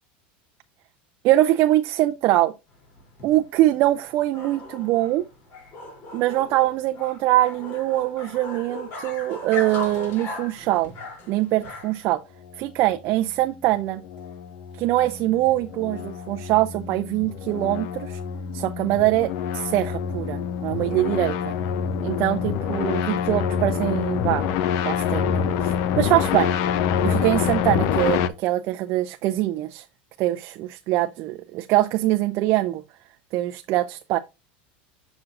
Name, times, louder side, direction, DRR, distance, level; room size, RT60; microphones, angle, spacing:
voice 1, 1.2-2.5 3.2-5.3 6.1-10.9 11.3-12.2 12.6-14.0 14.8-18.2 18.5-21.5 22.0-24.5 24.8-26.5 27.0-29.8 30.2-32.8 33.3-34.2, right 15 dB, 50° right, 0.4 m, -23 dB
sound 1, 2.7-12.1, left 2 dB, 45° left, 3.2 m, -38 dB
sound 2, 13.7-28.3, left 8 dB, 60° left, 0.6 m, -26 dB
7.5 x 6.0 x 2.5 m
supercardioid pair, 125°, 5 cm